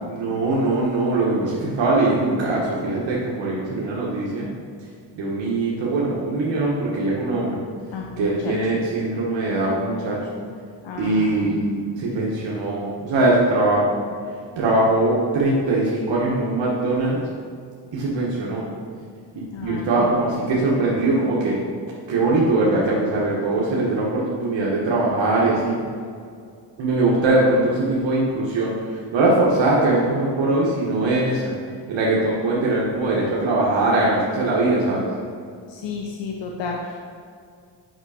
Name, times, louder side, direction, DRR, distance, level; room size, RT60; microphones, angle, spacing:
voice 1, 0.1-4.5 5.1-7.6 8.2-10.2 11.0-14.0 14.6-17.2 17.9-18.7 19.3-21.6 22.1-25.8 26.8-31.5 31.9-35.1, right 2 dB, 85° right, -5 dB, 1.3 m, -21 dB
voice 2, 7.9-8.6 10.8-11.7 19.5-21.0 35.7-37.0, left 4 dB, 85° left, 0 dB, 0.8 m, -33 dB
6.4 x 5.7 x 4.9 m, 2.2 s
cardioid pair, 90°, 44 cm